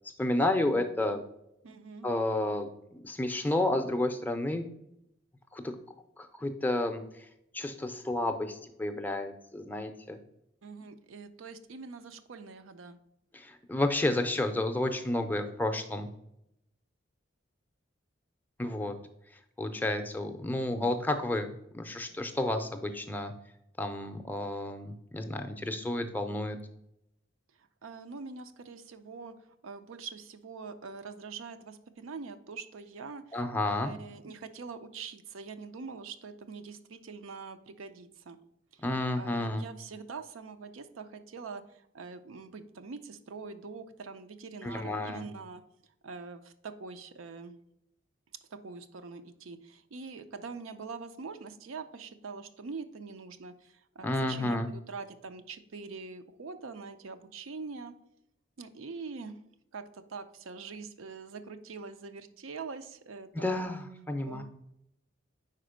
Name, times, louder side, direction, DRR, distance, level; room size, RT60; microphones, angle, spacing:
voice 1, 0.0-1.2 2.0-2.7 2.9-4.7 5.5-5.8 6.2-7.3 7.5-10.2 13.3-16.1 18.6-19.0 19.6-23.3 23.8-26.6 33.3-33.9 38.8-39.7 44.6-45.3 54.0-54.7 63.3-64.4, left 1 dB, 10° left, 6 dB, 0.5 m, -31 dB
voice 2, 1.6-2.1 10.6-13.0 27.8-29.3 29.6-38.4 38.7-38.8 39.2-41.6 41.9-45.6 46.0-47.5 48.5-57.9 58.6-59.3 59.7-63.6 64.2-64.4, right 4 dB, 85° right, 9 dB, 0.5 m, -44 dB
5.0 x 4.3 x 5.0 m, 0.80 s
head